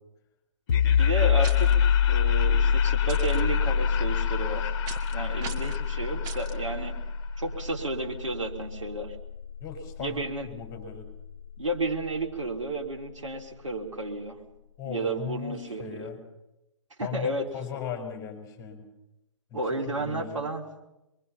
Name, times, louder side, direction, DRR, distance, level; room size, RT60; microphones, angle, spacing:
sound 1, 0.7-12.1, left 7 dB, 65° left, 0.9 m, -26 dB
Laughter, 0.7-7.6, left 10 dB, 45° left, 1.7 m, -37 dB
voice 1, 0.9-1.7 2.1-4.8 5.1-6.9 7.4-9.2 10.0-10.5 11.6-14.4 14.8-16.1 17.0-17.5 19.5-20.6, right 2 dB, 75° right, 1 dB, 3.5 m, -32 dB
sound 2, 1.4-1.8 3.1-3.4 4.9-5.1 5.4-5.8 6.2-6.6, right 6 dB, 25° right, 1.4 m, -40 dB
voice 2, 9.6-11.1 14.8-16.2 17.0-18.8 19.5-19.6 19.9-20.4, left 7 dB, 20° left, 4 dB, 5.1 m, -38 dB
25.0 x 22.5 x 5.8 m, 0.92 s
figure-of-eight pair, 125°, 16 cm